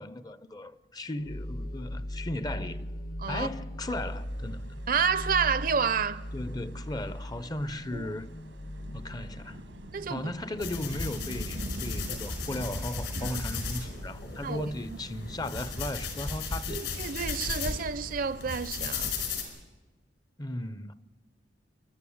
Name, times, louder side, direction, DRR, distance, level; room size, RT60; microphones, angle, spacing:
voice 1, 0.0-2.9 3.3-4.7 6.3-8.3 8.9-9.6 10.1-16.8 20.4-20.9, left 1 dB, 20° left, 0.6 m, -36 dB
sound 1, 1.2-10.5, equal, 55° left, 1.0 m, -39 dB
sound 2, 3.8-19.2, right 1 dB, 90° right, 1.7 m, -47 dB
voice 2, 4.9-6.2 7.9-8.1 9.9-10.3 12.1-12.2 13.2-13.4 14.4-14.7 15.1-15.2 16.7-19.1, right 6 dB, 50° right, 0.6 m, -30 dB
sound 3, 10.6-19.4, left 3 dB, 70° left, 5.1 m, -35 dB
29.5 x 12.0 x 8.6 m
head